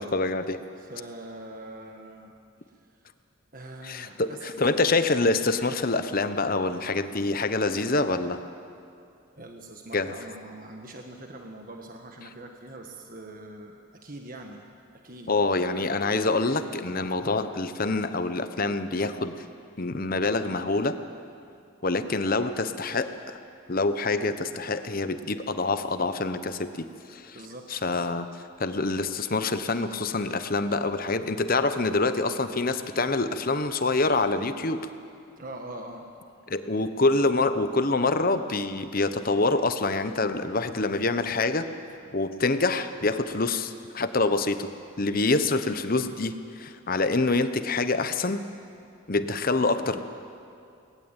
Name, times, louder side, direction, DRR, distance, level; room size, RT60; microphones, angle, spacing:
voice 1, 0.0-0.6 3.8-8.4 9.9-10.1 15.3-19.4 19.8-21.0 21.8-23.4 23.7-27.4 27.7-28.3 28.6-34.9 36.5-41.7 42.1-44.7 45.0-48.4 49.1-50.0, left 3 dB, 40° left, 10 dB, 1.0 m, -26 dB
voice 2, 0.7-2.3 2.7-3.0 3.5-4.9 9.3-14.7 14.9-15.9 27.3-27.7 35.4-36.0, right 1 dB, 40° right, 2 dB, 1.5 m, -43 dB
24.0 x 19.5 x 9.0 m, 2.5 s
head